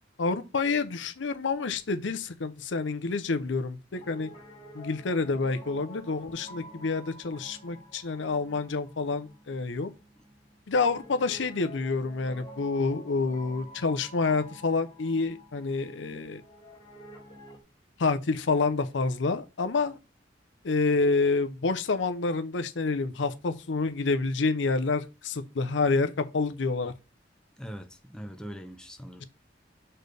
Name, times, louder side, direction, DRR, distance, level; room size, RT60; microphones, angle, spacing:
voice 1, 0.2-4.3 4.7-9.9 10.7-16.4 18.0-20.0 20.6-26.9, left 4 dB, 75° left, 0.6 m, -28 dB
Piano, 3.9-17.6, equal, 25° left, 1.8 m, -49 dB
voice 2, 27.6-29.2, equal, 5° left, 0.6 m, -41 dB
6.6 x 4.3 x 3.3 m
head